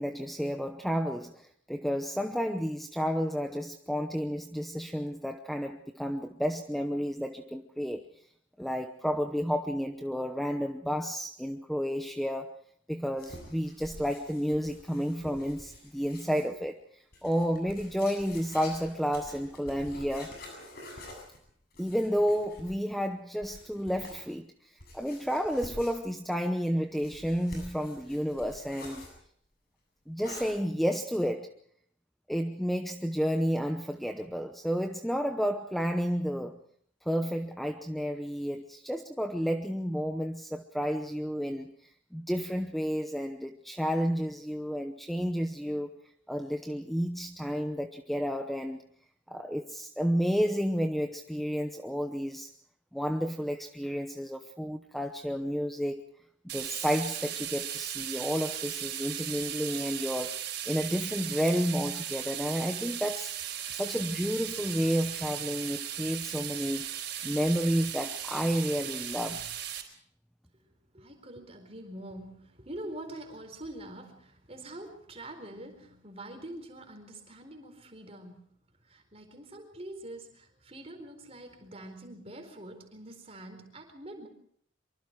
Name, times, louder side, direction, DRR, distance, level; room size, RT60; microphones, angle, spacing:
voice 1, 0.0-8.0 8.6-12.6 12.9-20.5 21.8-29.1 30.1-31.5 32.3-36.6 37.0-41.7 42.1-46.0 46.3-48.8 49.3-52.5 52.9-56.0 56.5-66.9 67.2-69.4, equal, ahead, 5 dB, 0.8 m, -31 dB
sound 1, 13.2-16.6 17.1-22.9 23.4-24.2 24.8-26.3 26.9-29.2 30.2-30.5, left 1 dB, 50° left, 7.8 m, -48 dB
sound 2, 56.5-69.8, right 10 dB, 55° right, 4.5 m, -37 dB
voice 2, 70.9-78.4 78.8-84.3, right 1 dB, 30° right, 5 dB, 4.4 m, -45 dB
24.5 x 24.5 x 4.7 m, 0.63 s
head